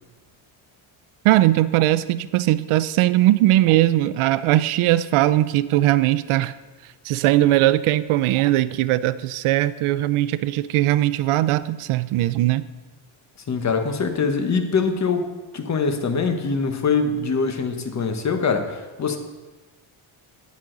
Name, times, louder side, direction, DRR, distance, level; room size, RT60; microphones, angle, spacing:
voice 1, 1.2-6.5 7.0-12.6, right 15 dB, 80° right, 16 dB, 0.6 m, -19 dB
voice 2, 13.5-15.3 15.5-19.2, left 5 dB, 35° left, 6 dB, 1.1 m, -23 dB
12.5 x 9.7 x 3.9 m, 1.2 s
cardioid pair, 145°, 49 cm